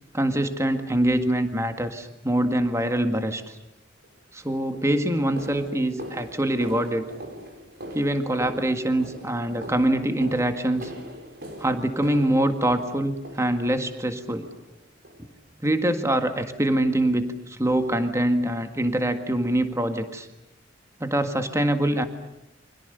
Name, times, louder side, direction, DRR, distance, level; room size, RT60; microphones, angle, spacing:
voice 1, 0.1-3.6 4.3-7.1 7.9-10.9 11.6-14.5 15.2-15.3 15.6-20.3 21.0-22.0, right 1 dB, 15° right, 7 dB, 1.8 m, -24 dB
sound 1, 4.0-4.2 4.7-13.9 14.4-14.8 15.0-15.3 15.6-15.8 16.3-16.4 16.9-17.0, equal, 60° right, 5.9 m, -41 dB
29.5 x 25.5 x 6.8 m, 0.87 s
head